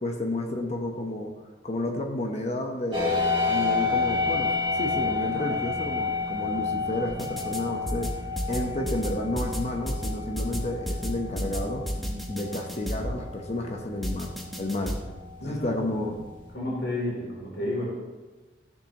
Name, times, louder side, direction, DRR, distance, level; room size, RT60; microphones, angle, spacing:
voice 1, 0.0-1.3 1.6-8.2 8.5-11.8 12.3-15.0 15.4-16.2, left 1 dB, 40° left, 3 dB, 0.9 m, -31 dB
sound 1, 2.9-16.5, left 4 dB, 25° right, 2.0 m, -31 dB
sound 2, 7.1-7.6 7.9-13.2 14.0-15.0, equal, ahead, 1.0 m, -31 dB
voice 2, 12.0-12.4 15.4-16.2 16.5-17.8, left 1 dB, 85° left, -5 dB, 3.1 m, -32 dB
14.0 x 6.8 x 2.9 m, 1.2 s
head